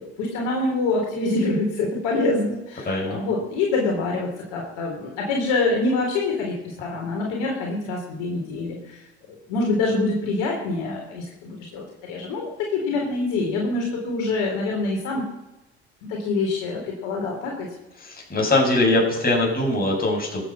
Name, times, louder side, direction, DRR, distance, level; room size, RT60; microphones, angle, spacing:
voice 1, 0.0-9.0 9.5-15.2 16.0-17.7, left 3 dB, 65° left, -1 dB, 3.9 m, -25 dB
voice 2, 2.8-3.2 18.0-20.4, left 2 dB, 25° left, -1 dB, 7.7 m, -22 dB
22.0 x 8.5 x 6.2 m, 0.98 s
hypercardioid pair, 65°, 34 cm